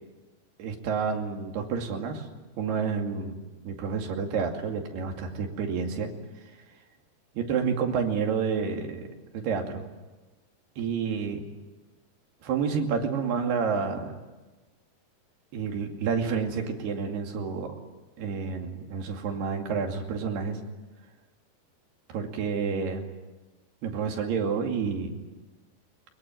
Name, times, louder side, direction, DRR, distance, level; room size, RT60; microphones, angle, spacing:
voice 1, 0.6-2.3 2.6-6.1 7.4-9.1 9.3-9.8 10.8-11.4 12.4-14.1 15.5-17.7 18.2-20.6 22.1-23.0 23.8-25.1, right 6 dB, 65° right, 3 dB, 4.4 m, -29 dB
22.5 x 22.0 x 9.2 m, 1.2 s
omnidirectional pair, 5.0 m